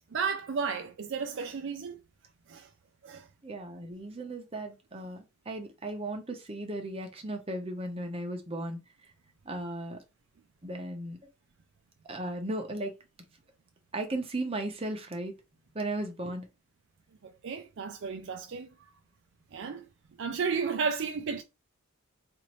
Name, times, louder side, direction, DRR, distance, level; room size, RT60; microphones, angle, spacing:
voice 1, 0.1-2.0 2.5-2.7 3.0-3.3 17.4-18.7 19.5-19.9 20.2-21.4, right 5 dB, 55° right, 0.4 m, -33 dB
voice 2, 3.4-8.8 9.5-10.0 10.6-11.2 12.0-12.9 13.9-15.3 15.7-16.5 19.6-19.7, right 1 dB, 25° right, 0.7 m, -36 dB
4.0 x 2.6 x 3.0 m
head